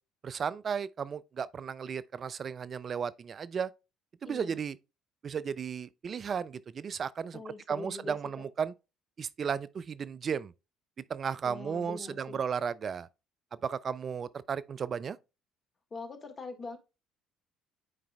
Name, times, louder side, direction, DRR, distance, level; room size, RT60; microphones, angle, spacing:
voice 1, 0.2-3.7 4.2-4.8 5.2-8.7 9.2-10.5 11.1-13.1 13.6-15.2, right 7 dB, 45° right, 0.3 m, -34 dB
voice 2, 4.2-4.6 7.3-8.4 11.4-12.4 15.9-16.8, left 3 dB, 35° left, 1.6 m, -43 dB
9.7 x 4.9 x 2.2 m
hypercardioid pair, 55°, 0 cm